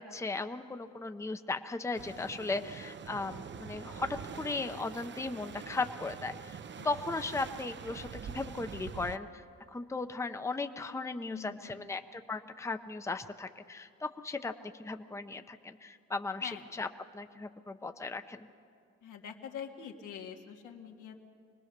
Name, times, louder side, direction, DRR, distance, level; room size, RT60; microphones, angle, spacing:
voice 1, 0.0-6.6 6.8-14.5 14.8-16.9 17.1-18.5, left 3 dB, 10° left, 8 dB, 0.7 m, -37 dB
sound 1, 1.9-9.2, right 7 dB, 40° right, 0.7 m, -45 dB
voice 2, 11.3-11.9 16.4-16.6 19.0-21.3, left 8 dB, 85° left, 2 dB, 2.0 m, -45 dB
25.0 x 19.5 x 6.7 m, 2.4 s
cardioid pair, 90°, 30 cm